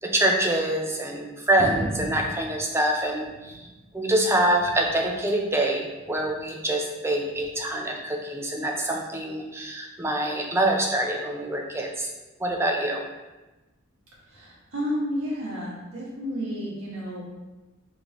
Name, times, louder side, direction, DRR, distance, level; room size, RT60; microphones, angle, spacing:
voice 1, 0.0-3.7 3.9-12.1 12.4-13.0, right 1 dB, 10° right, 0 dB, 0.4 m, -25 dB
sound 1, 1.6-3.8 4.2-5.1 6.0-6.4 7.4-7.5, equal, 40° right, 0.8 m, -37 dB
voice 2, 14.3-17.2, equal, 85° right, -6 dB, 1.4 m, -31 dB
3.8 x 3.4 x 3.0 m, 1.1 s
head